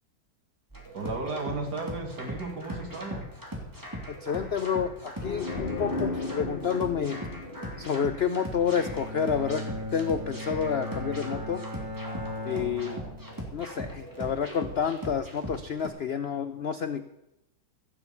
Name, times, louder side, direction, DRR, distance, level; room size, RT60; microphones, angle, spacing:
sound 1, 0.7-15.9, equal, 10° right, 3.2 m, -39 dB
voice 1, 0.9-3.3, right 3 dB, 65° right, 3 dB, 2.7 m, -34 dB
voice 2, 4.1-7.2 7.8-9.6 9.9-11.6 12.5-13.0 13.5-17.0, left 7 dB, 60° left, 10 dB, 0.6 m, -29 dB
sound 2, 5.2-8.9, left 3 dB, 35° left, 1.1 m, -35 dB
Bowed string instrument, 8.4-13.7, left 1 dB, 50° right, 2.9 m, -38 dB
15.5 x 7.2 x 8.3 m, 0.88 s
omnidirectional pair, 1.8 m